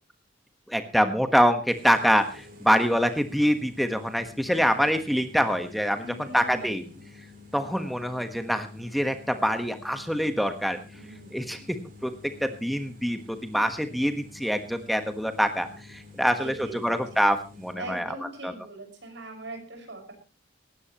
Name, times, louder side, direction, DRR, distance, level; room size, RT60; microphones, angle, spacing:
voice 1, 0.7-6.8 7.5-10.8 11.3-12.1 12.4-18.1 18.4-18.5, equal, ahead, 7 dB, 1.3 m, -25 dB
sound 1, 1.7-17.7, left 3 dB, 45° right, 4.9 m, -49 dB
voice 2, 6.0-7.0 10.9-11.6 16.2-17.2 17.8-20.1, right 1 dB, 70° right, 4 dB, 5.8 m, -42 dB
19.0 x 15.5 x 3.0 m, 0.31 s
head